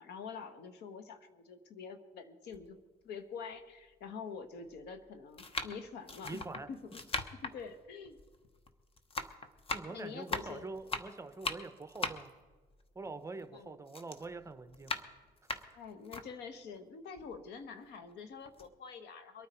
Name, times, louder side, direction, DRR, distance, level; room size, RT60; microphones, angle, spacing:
voice 1, 0.0-2.8 3.0-6.4 6.7-7.0 7.4-8.2 9.9-10.7 13.5-13.7 15.7-19.5, left 5 dB, 80° left, 9 dB, 1.4 m, -46 dB
sound 1, 2.5-2.6 3.5-3.6 4.6-4.9 5.3-8.7 9.0-13.6 13.9-16.3 16.8-16.9 17.2-18.1 18.5-18.7, left 3 dB, 35° left, 1.1 m, -40 dB
voice 2, 6.2-6.7 9.7-12.3 12.9-14.9, right 3 dB, 15° right, 10 dB, 0.8 m, -44 dB
23.5 x 9.3 x 4.5 m, 1.4 s
cardioid pair, 110°, 17 cm